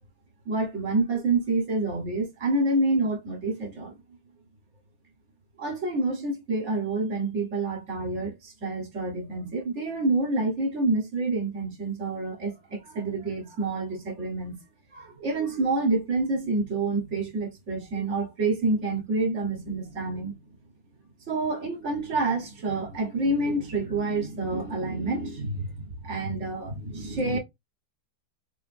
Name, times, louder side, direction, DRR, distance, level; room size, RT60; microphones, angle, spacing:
voice 1, 0.4-4.0 5.6-14.6 14.9-20.4 21.3-27.4, right 2 dB, 45° right, 1.3 m, -28 dB
4.3 x 2.6 x 2.5 m
omnidirectional pair, 1.9 m